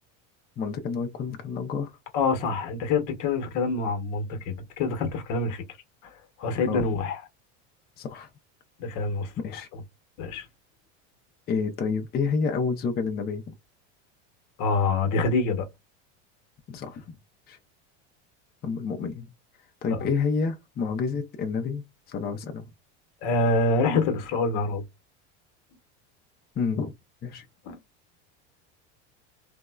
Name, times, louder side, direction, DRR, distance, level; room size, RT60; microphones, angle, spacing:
voice 1, 0.6-1.9 6.7-6.9 8.0-8.3 9.4-9.7 11.5-13.4 16.7-17.2 17.5-17.6 18.6-19.3 19.8-22.7 26.6-26.9 27.2-27.5, left 5 dB, 30° left, 0.6 m, -29 dB
voice 2, 2.1-5.6 6.0-6.1 6.4-7.2 8.8-9.3 10.2-10.5 14.6-15.7 19.9-20.1 23.2-24.8 27.6-27.8, left 3 dB, 60° left, 1.0 m, -26 dB
3.5 x 2.1 x 2.2 m
supercardioid pair, 115°, 35 cm